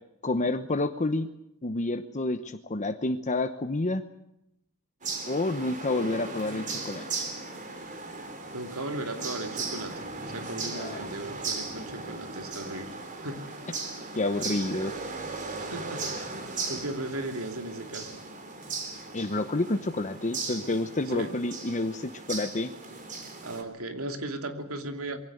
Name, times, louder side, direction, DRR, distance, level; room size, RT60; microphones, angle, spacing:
voice 1, 0.2-1.3 1.6-4.1 5.3-7.2 10.8-11.1 14.1-14.9 19.1-22.7, left 2 dB, 35° left, 9 dB, 0.9 m, -29 dB
sound 1, 5.0-23.6, right 3 dB, 35° right, 3.7 m, -37 dB
voice 2, 8.5-13.5 15.6-16.4 16.7-18.1 21.1-21.3 23.4-25.2, right 1 dB, 70° right, 6 dB, 2.9 m, -36 dB
23.0 x 17.0 x 9.2 m, 0.84 s
head